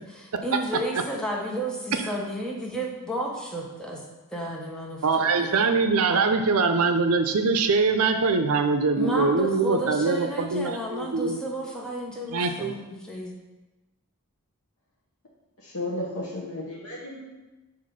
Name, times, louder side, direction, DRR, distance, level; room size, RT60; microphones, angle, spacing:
voice 1, 0.1-4.0 4.3-5.6 9.0-13.3, equal, 5° left, -3 dB, 1.0 m, -32 dB
voice 2, 5.0-11.4 12.3-12.7, right 4 dB, 75° right, 7 dB, 0.6 m, -23 dB
voice 3, 15.6-17.2, left 1 dB, 75° left, -4 dB, 1.0 m, -33 dB
5.8 x 3.5 x 5.1 m, 1.1 s
head